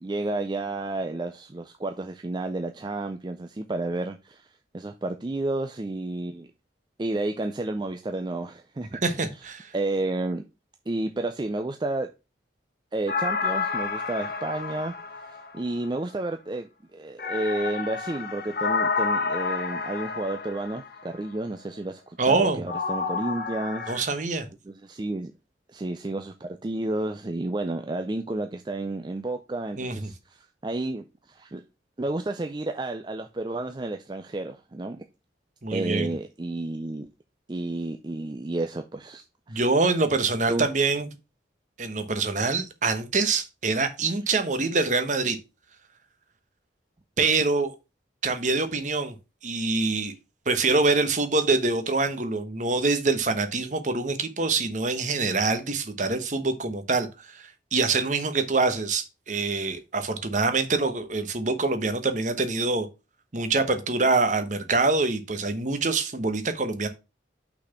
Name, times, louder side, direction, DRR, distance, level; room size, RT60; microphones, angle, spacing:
voice 1, 0.0-6.5 7.0-9.3 9.7-10.4 10.9-12.1 12.9-14.9 15.3-23.9 24.7-25.3 25.7-31.6 32.0-35.0 35.7-37.1 37.5-39.6 40.5-40.7, right 2 dB, 25° right, 0.4 m, -31 dB
voice 2, 9.0-9.7 22.2-22.6 23.9-24.5 29.8-30.1 35.6-36.1 39.5-41.1 41.8-45.4 47.2-47.7 48.2-49.1 49.4-50.1 50.5-62.9 63.3-66.9, right 3 dB, 40° right, 1.0 m, -25 dB
sound 1, 13.1-15.9 17.2-21.0 22.7-24.0, left 4 dB, 55° left, 1.0 m, -30 dB
5.8 x 4.2 x 5.7 m
head